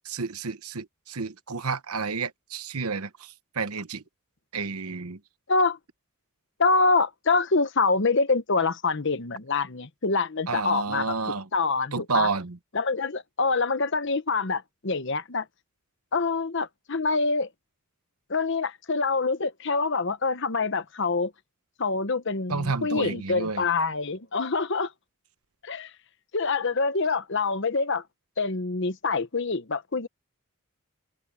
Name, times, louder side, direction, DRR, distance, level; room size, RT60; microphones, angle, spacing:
voice 1, 0.0-4.0 4.5-5.2 10.5-11.5 11.9-12.6 22.5-23.6, right 4 dB, 85° right, 1.1 m, -30 dB
voice 2, 5.5-5.8 6.6-11.2 11.5-12.3 12.7-15.5 16.1-17.5 18.3-21.3 21.8-24.9 25.6-25.9 26.3-28.0 28.4-30.1, left 4 dB, 55° left, 1.0 m, -25 dB
head